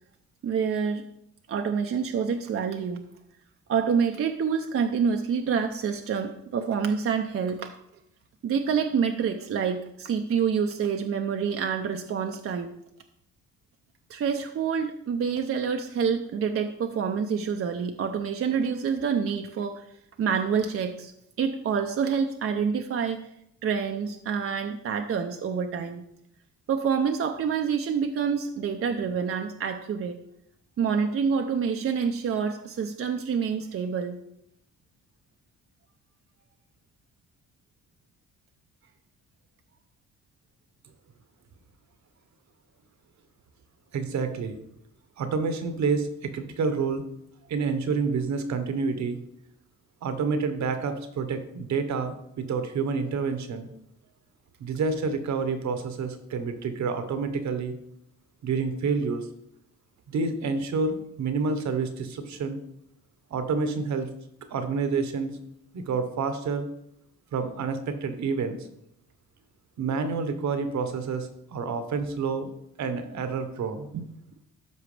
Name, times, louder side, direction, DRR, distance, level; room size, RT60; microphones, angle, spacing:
voice 1, 0.4-1.1 1.5-3.0 3.7-7.8 8.4-12.8 14.1-19.8 20.2-21.1 21.4-23.3 23.6-26.0 26.7-30.2 30.8-34.2 73.9-74.1, right 6 dB, 45° right, 5 dB, 0.7 m, -27 dB
voice 2, 43.9-44.6 45.2-47.0 47.5-49.2 50.0-53.7 54.6-57.7 58.4-59.3 60.1-62.6 63.3-64.1 64.5-65.4 65.7-66.7 67.3-68.6 69.8-72.5 72.8-73.9, right 4 dB, 65° right, 8 dB, 1.2 m, -28 dB
12.5 x 4.7 x 3.3 m, 0.76 s
cardioid pair, 90°, 30 cm